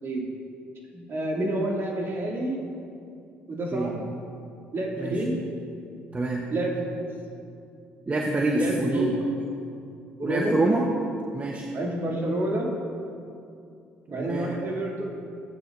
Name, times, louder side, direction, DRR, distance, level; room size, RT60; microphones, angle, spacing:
voice 1, 0.9-2.6 3.5-4.0 4.7-5.4 6.5-6.9 8.6-9.1 10.2-10.6 11.7-12.7 14.1-15.1, right 1 dB, 50° right, -2 dB, 2.6 m, -28 dB
voice 2, 6.1-6.5 8.1-9.2 10.2-10.9 11.3-11.7 14.1-14.5, right 2 dB, 25° right, 0 dB, 1.1 m, -26 dB
15.5 x 9.1 x 2.6 m, 2.5 s
hypercardioid pair, 60°, 5 cm